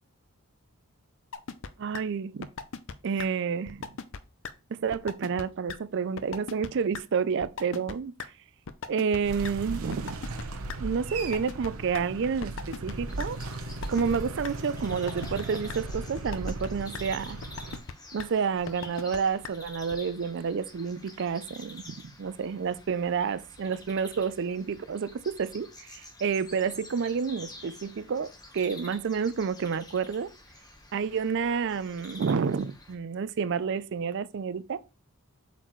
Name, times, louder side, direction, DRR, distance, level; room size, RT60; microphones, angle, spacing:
sound 1, 1.3-1.7 1.9-2.0 2.4-2.9 3.2-3.3 3.7-4.2 4.4-4.5 4.9-5.4 5.7-5.8 6.2-6.7 6.9-7.0 7.4-7.9 8.2-8.3 8.7-9.5 9.9-10.8 11.2-12.0 12.4-12.9 13.2-13.3 13.7-14.2 14.4-14.5 14.9-15.4 15.7-15.8 16.2-16.7 16.9-17.0 17.4-17.9 18.2-18.3 18.7-19.2 19.4-19.5 19.9-20.0, left 5 dB, 60° left, 0.5 m, -37 dB
voice 1, 1.8-2.5 3.0-3.9 4.7-8.3 8.9-10.2 10.8-13.4 13.9-17.4 18.1-30.3 30.9-34.9, right 6 dB, 55° right, 0.4 m, -29 dB
sound 2, 9.2-17.8, right 2 dB, 75° right, 0.9 m, -37 dB
sound 3, 13.1-33.0, left 2 dB, 15° left, 1.1 m, -49 dB
7.7 x 4.2 x 3.1 m
head